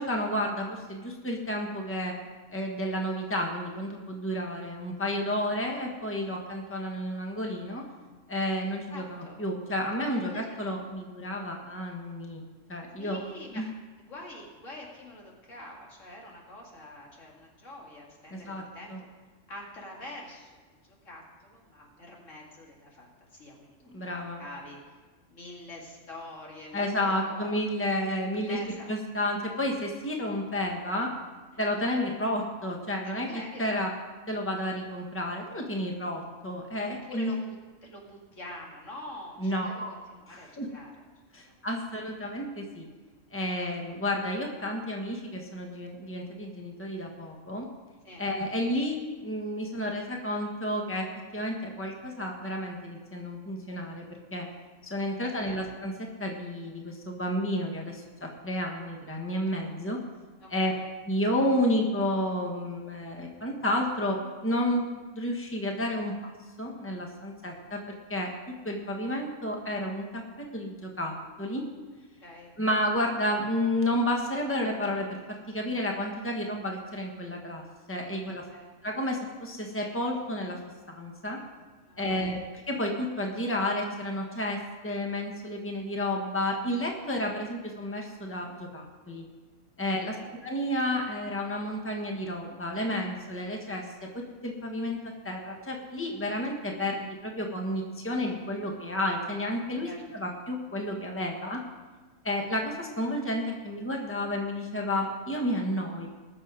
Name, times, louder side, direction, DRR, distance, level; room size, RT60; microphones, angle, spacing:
voice 1, 0.0-2.1 2.5-7.8 8.3-12.4 12.7-13.2 13.5-13.7 18.3-18.6 18.9-19.0 23.9-24.4 26.7-31.1 31.6-33.9 34.3-37.3 39.4-39.9 40.3-40.7 41.3-42.9 43.3-47.7 48.2-54.4 54.8-60.0 60.5-60.7 61.1-64.2 64.4-64.8 65.1-66.3 66.6-68.3 68.6-71.6 72.6-78.4 78.8-80.6 80.9-81.4 82.0-82.4 82.7-89.2 89.8-90.2 90.4-95.0 95.2-101.6 102.2-106.1, left 1 dB, 10° left, 1 dB, 1.5 m, -31 dB
voice 2, 8.9-9.4 10.1-10.4 13.0-13.7 14.0-19.1 19.5-25.0 25.3-27.6 28.5-29.0 31.5-31.6 33.0-33.8 37.0-37.5 37.8-40.9 41.5-41.7 48.0-48.2 55.5-55.6 60.4-60.8 72.2-72.5 78.5-78.7 81.8-82.4 90.0-90.3 99.8-100.0, left 1 dB, 80° left, -2 dB, 2.7 m, -46 dB
20.0 x 6.8 x 5.1 m, 1.3 s
omnidirectional pair, 1.3 m